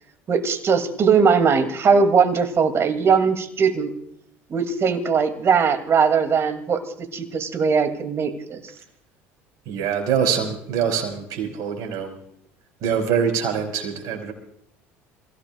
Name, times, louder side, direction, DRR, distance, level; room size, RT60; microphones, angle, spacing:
voice 1, 0.3-3.9 4.5-6.8 7.1-8.6, right 5 dB, 40° right, 8 dB, 2.4 m, -20 dB
voice 2, 9.6-12.1 12.8-14.3, right 7 dB, 60° right, 3 dB, 5.0 m, -24 dB
27.5 x 16.5 x 2.4 m, 0.69 s
hypercardioid pair, 75°, 7 cm